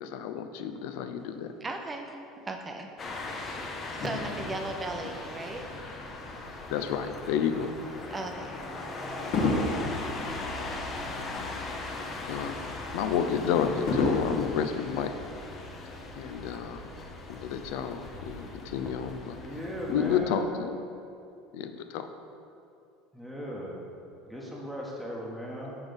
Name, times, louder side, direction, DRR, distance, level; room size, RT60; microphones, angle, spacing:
voice 1, 0.0-1.5 6.7-7.7 12.3-12.5 12.9-15.2 16.2-16.8 17.3-19.4 19.9-20.8 21.5-22.1, left 7 dB, 75° left, 8 dB, 0.4 m, -30 dB
voice 2, 1.6-3.1 3.9-5.7 8.1-8.7, right 2 dB, 20° right, 4 dB, 0.6 m, -37 dB
sound 1, 3.0-20.2, left 2 dB, 30° left, 0.7 m, -39 dB
Fireworks, 4.0-6.6 7.2-7.4 9.3-11.8 12.2-12.3 13.9-15.7 16.5-16.6, left 2 dB, 55° left, 1.1 m, -33 dB
voice 3, 19.4-20.5 23.1-23.8 24.3-25.8, equal, ahead, -5 dB, 1.0 m, -37 dB
6.0 x 3.6 x 5.2 m, 2.6 s
supercardioid pair, 110°, 0 cm